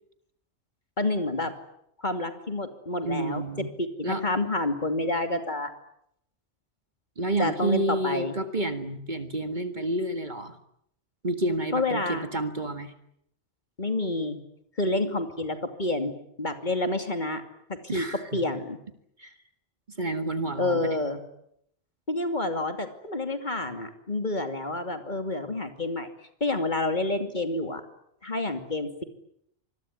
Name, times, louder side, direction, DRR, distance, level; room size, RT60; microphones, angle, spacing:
voice 1, 1.0-1.5 2.0-3.4 3.8-5.7 7.4-8.3 11.7-12.3 13.8-14.4 14.8-16.1 16.4-17.4 17.9-18.1 18.3-18.8 20.6-21.2 22.1-26.1 26.4-27.8 28.2-29.0, left 2 dB, 40° left, 7 dB, 2.8 m, -28 dB
voice 2, 3.0-3.7 4.0-4.2 7.2-10.6 11.2-12.9 17.9-18.4 19.2-19.3 20.0-21.0, right 1 dB, 40° right, 9 dB, 1.9 m, -29 dB
26.0 x 22.0 x 9.7 m, 0.74 s
omnidirectional pair, 1.2 m